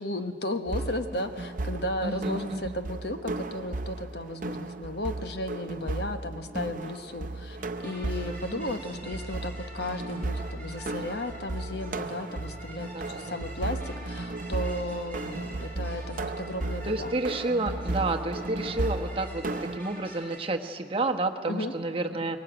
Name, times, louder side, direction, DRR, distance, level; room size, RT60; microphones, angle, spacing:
voice 1, 0.0-7.6 7.8-17.1 21.5-21.7, left 1 dB, 60° left, 8 dB, 1.3 m, -34 dB
sound 1, 0.7-19.8, right 2 dB, 45° right, 0.7 m, -35 dB
voice 2, 2.0-2.7 8.3-8.7 9.0-9.1 12.9-13.4 16.8-22.4, right 2 dB, 30° right, 4 dB, 1.2 m, -30 dB
sound 2, 7.7-20.4, right 1 dB, 10° left, 6.2 m, -46 dB
22.0 x 19.5 x 9.0 m, 2.3 s
head